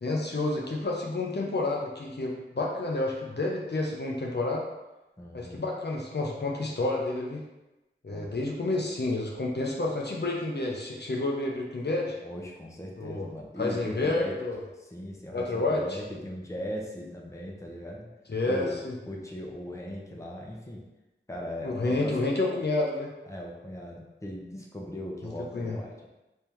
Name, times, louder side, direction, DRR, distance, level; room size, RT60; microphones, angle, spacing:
voice 1, 0.0-4.6 5.3-7.4 8.0-12.2 13.0-13.3 13.6-14.6 15.3-16.0 18.3-18.9 21.6-23.1 25.2-25.8, left 2 dB, 55° left, -2 dB, 0.7 m, -29 dB
voice 2, 5.2-5.6 8.1-8.4 12.2-14.4 14.8-18.1 18.4-18.8 19.1-20.8 21.3-22.2 23.3-26.1, equal, 15° left, -2 dB, 0.7 m, -38 dB
3.5 x 3.3 x 2.9 m, 1.0 s
wide cardioid pair, 40°, 20 cm